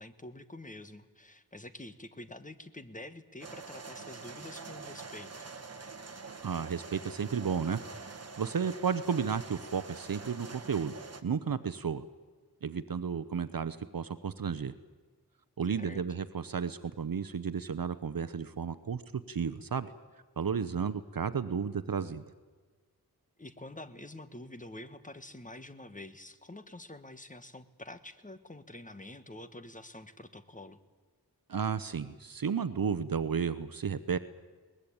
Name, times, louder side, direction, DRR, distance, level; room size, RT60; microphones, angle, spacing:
voice 1, 0.0-5.3 15.8-16.0 23.4-30.8, left 1 dB, 20° left, 11 dB, 1.3 m, -47 dB
sound 1, 3.4-11.2, right 4 dB, 40° right, 1.5 m, -46 dB
voice 2, 6.4-7.8 8.1-10.9 11.2-12.0 12.6-14.7 15.6-19.9 20.4-22.2 31.5-34.2, right 6 dB, 60° right, 13 dB, 0.8 m, -33 dB
22.0 x 20.0 x 8.7 m, 1.4 s
wide cardioid pair, 90°, 39 cm